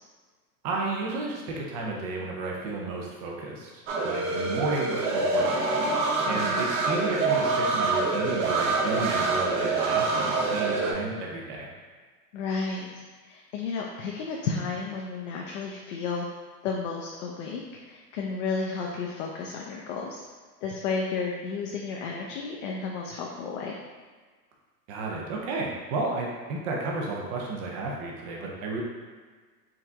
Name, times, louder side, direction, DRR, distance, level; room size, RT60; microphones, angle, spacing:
voice 1, 0.6-5.5 6.3-11.7 24.9-28.8, right 3 dB, 25° right, -2 dB, 0.4 m, -32 dB
sound 1, 3.9-10.9, right 3 dB, 50° right, 0.8 m, -26 dB
voice 2, 6.3-6.7 12.3-16.3 16.6-20.2 20.6-23.8, left 4 dB, 50° left, -1 dB, 0.6 m, -32 dB
4.8 x 2.5 x 3.4 m, 1.5 s
hypercardioid pair, 125°, 48 cm